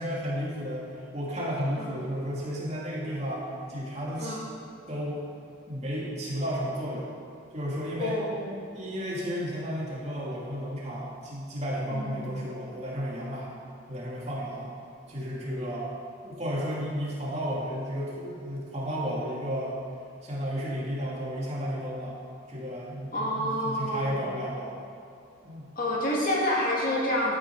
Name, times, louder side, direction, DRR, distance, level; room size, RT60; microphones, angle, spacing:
voice 1, 0.0-4.4 4.9-5.2 5.7-7.1 7.5-8.2 8.7-13.5 13.9-14.7 15.1-15.9 16.2-19.8 20.2-22.1 22.5-24.7 25.4-25.7, equal, 30° right, -6 dB, 2.8 m, -33 dB
voice 2, 4.2-4.5 8.0-8.5 11.9-12.2 23.1-24.2 25.8-27.3, left 1 dB, 40° left, -4 dB, 2.3 m, -28 dB
13.0 x 9.7 x 4.9 m, 2.5 s
head